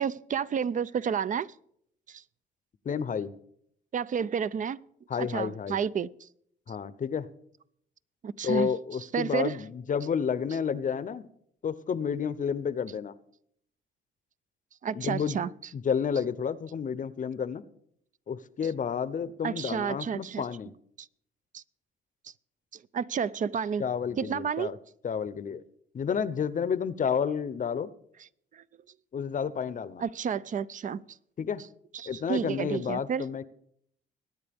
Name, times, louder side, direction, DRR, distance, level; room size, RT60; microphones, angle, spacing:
voice 1, 0.0-1.5 2.1-2.2 3.9-4.8 5.2-6.3 8.2-8.7 9.1-9.6 14.8-15.5 19.4-20.4 21.0-21.1 21.5-21.6 22.2-22.3 22.7-23.8 24.2-24.8 28.5-28.6 30.0-31.2 31.9-33.2, right 7 dB, 40° right, 0.4 m, -31 dB
voice 2, 2.8-3.3 5.1-5.8 6.7-7.3 8.4-11.3 11.6-13.1 14.9-15.4 15.7-17.6 18.3-20.7 23.8-24.8 25.0-25.6 25.9-27.9 29.1-30.0 31.4-31.6 32.0-33.4, left 7 dB, 40° left, 0.7 m, -30 dB
22.0 x 9.4 x 3.5 m
cardioid pair, 90°, 20 cm